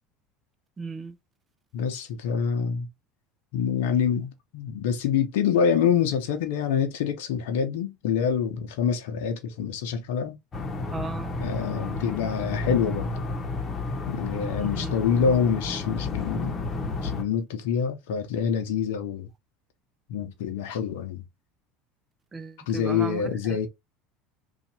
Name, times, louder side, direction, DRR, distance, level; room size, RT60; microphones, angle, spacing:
voice 1, 0.8-1.1 10.9-11.4 14.6-14.9 22.3-23.3, right 4 dB, 25° right, 0.7 m, -36 dB
voice 2, 1.7-2.9 3.5-10.4 11.4-13.2 14.1-16.7 17.0-19.3 20.1-21.2 22.7-23.7, left 7 dB, 75° left, 0.7 m, -26 dB
sound 1, 10.5-17.2, left 3 dB, 35° left, 1.0 m, -31 dB
2.7 x 2.5 x 4.1 m
hypercardioid pair, 85°, 0 cm